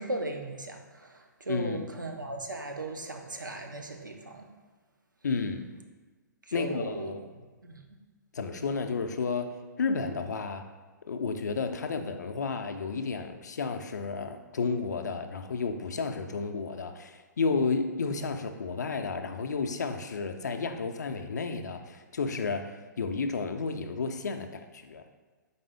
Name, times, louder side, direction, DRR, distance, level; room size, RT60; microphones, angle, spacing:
voice 1, 0.0-4.5 6.5-7.1 7.6-7.8, right 2 dB, 80° right, 3 dB, 0.6 m, -37 dB
voice 2, 1.5-1.9 5.2-5.7 6.5-7.2 8.3-10.7 11.1-25.0, left 4 dB, 60° left, 7 dB, 0.4 m, -32 dB
4.2 x 3.5 x 3.4 m, 1.3 s
figure-of-eight pair, 120°, 10 cm